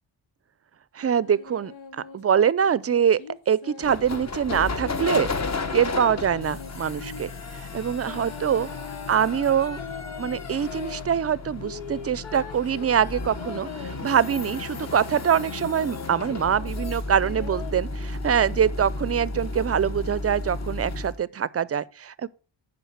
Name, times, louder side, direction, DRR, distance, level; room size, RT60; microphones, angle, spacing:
voice 1, 0.9-3.2 3.5-5.3 5.7-8.7 9.1-9.8 10.2-22.3, right 8 dB, 35° right, 0.4 m, -24 dB
sound 1, 1.0-4.0 4.5-7.2 8.0-11.1 11.6-14.5 15.1-17.7, left 6 dB, 85° left, 1.2 m, -42 dB
sound 2, 3.8-21.2, left 3 dB, 35° left, 1.1 m, -33 dB
9.2 x 5.1 x 5.6 m
cardioid pair, 85°, 45 cm